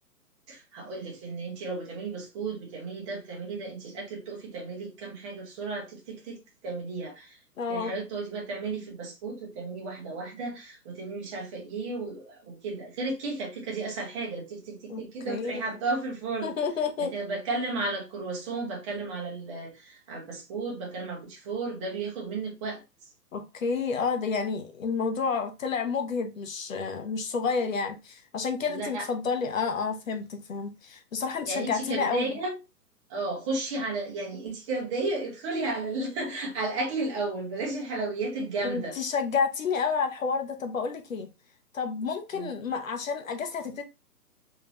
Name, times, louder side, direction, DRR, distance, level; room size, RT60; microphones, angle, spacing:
voice 1, 0.5-6.4 6.6-7.4 7.7-16.5 17.0-22.8 28.7-29.1 31.4-32.5 33.1-39.0 42.3-42.5, right 3 dB, 20° right, 1.0 m, -33 dB
voice 2, 7.6-7.9 14.9-15.6 16.4-17.1 23.3-32.3 38.6-41.3 41.7-43.8, left 5 dB, 55° left, 1.0 m, -30 dB
3.7 x 3.3 x 2.8 m
figure-of-eight pair, 135°, 48 cm